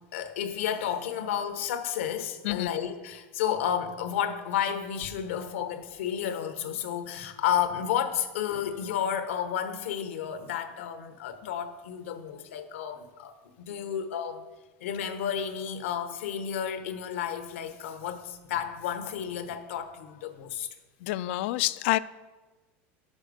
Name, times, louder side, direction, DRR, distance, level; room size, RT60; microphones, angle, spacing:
voice 1, 0.1-14.4 14.8-20.7, left 9 dB, 90° left, 9 dB, 0.9 m, -32 dB
voice 2, 21.0-22.0, left 17 dB, 75° left, 16 dB, 0.3 m, -27 dB
10.0 x 6.4 x 5.1 m, 1.2 s
supercardioid pair, 125°, 7 cm